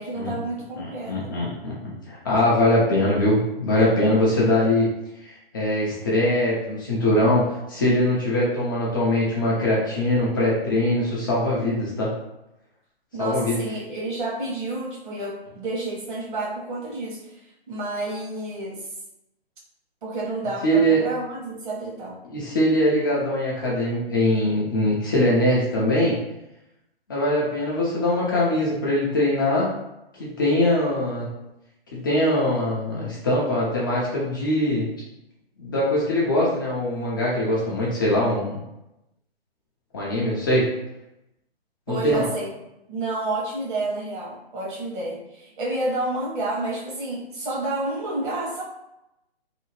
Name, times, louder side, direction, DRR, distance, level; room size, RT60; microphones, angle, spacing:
voice 1, 0.0-1.3 13.1-18.9 20.0-22.2 41.9-42.5 42.9-48.6, right 2 dB, 50° right, -3 dB, 1.2 m, -30 dB
voice 2, 0.8-4.9 5.2-7.4 7.7-12.1 13.2-13.6 20.6-21.0 22.3-26.1 27.1-29.7 30.2-31.3 31.9-34.9 35.6-38.6 39.9-40.7 41.9-42.3, left 1 dB, 20° left, -6 dB, 0.4 m, -22 dB
2.8 x 2.6 x 2.9 m, 0.89 s
hypercardioid pair, 145°, 31 cm